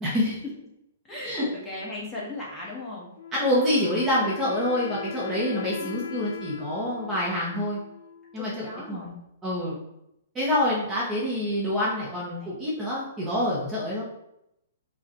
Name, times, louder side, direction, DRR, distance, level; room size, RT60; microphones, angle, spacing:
voice 1, 0.0-0.3 1.2-1.5 3.3-7.8 8.3-9.2 9.4-9.8 10.3-14.0, left 1 dB, 15° right, -6 dB, 0.9 m, -26 dB
voice 2, 1.0-3.1 5.8-6.4 8.3-9.1 12.4-12.6, left 2 dB, 10° left, -5 dB, 1.3 m, -38 dB
Wind instrument woodwind instrument, 3.2-8.7, left 7 dB, 65° left, 0.6 m, -40 dB
4.8 x 2.5 x 4.4 m, 0.81 s
hypercardioid pair, 155°, 0 cm